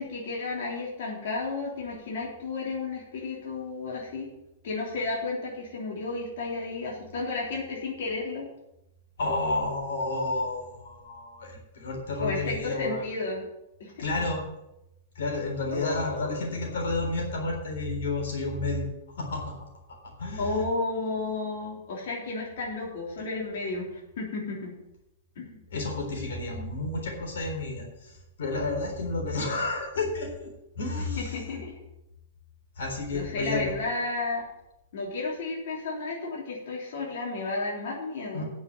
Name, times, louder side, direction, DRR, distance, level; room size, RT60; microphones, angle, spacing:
voice 1, 0.0-4.3 4.6-8.5 12.2-13.5 13.8-14.0 15.7-16.7 20.4-24.7 25.4-25.6 31.2-31.7 33.1-34.4 34.9-38.4, left 3 dB, 65° left, -3 dB, 3.4 m, -32 dB
voice 2, 9.2-13.0 14.0-14.4 15.2-19.5 20.2-20.6 25.7-30.5 30.8-31.6 32.8-33.7 38.3-38.4, left 2 dB, 90° left, 1 dB, 3.7 m, -31 dB
8.5 x 7.1 x 8.0 m, 0.90 s
supercardioid pair, 165°, 0 cm